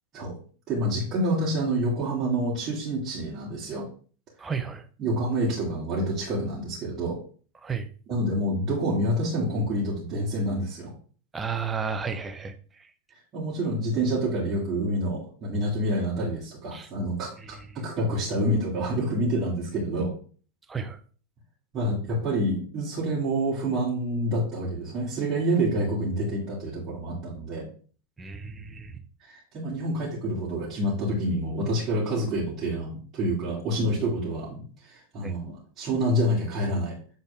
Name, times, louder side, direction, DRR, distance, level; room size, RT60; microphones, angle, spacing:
voice 1, 0.7-3.9 5.0-7.2 8.1-10.9 13.3-20.1 21.7-27.7 29.2-37.0, right 1 dB, 30° right, -8 dB, 2.7 m, -27 dB
voice 2, 4.4-4.8 7.6-7.9 11.3-12.9 16.7-16.9 17.4-17.7 20.7-21.0 28.2-29.0 35.2-35.4, right 6 dB, 15° right, 7 dB, 0.8 m, -33 dB
8.3 x 4.0 x 3.5 m, 0.42 s
figure-of-eight pair, 90°, 0 cm